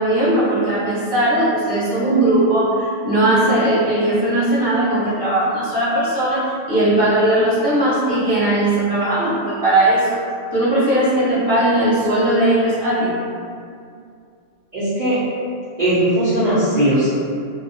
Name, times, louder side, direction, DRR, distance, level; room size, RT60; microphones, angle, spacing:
voice 1, 0.0-6.4 6.7-10.2 10.5-13.2, right 1 dB, 25° left, -14 dB, 0.8 m, -18 dB
voice 2, 14.7-15.2 15.8-17.1, right 1 dB, 55° right, -11 dB, 0.5 m, -18 dB
2.2 x 2.1 x 2.6 m, 2.3 s
omnidirectional pair, 1.3 m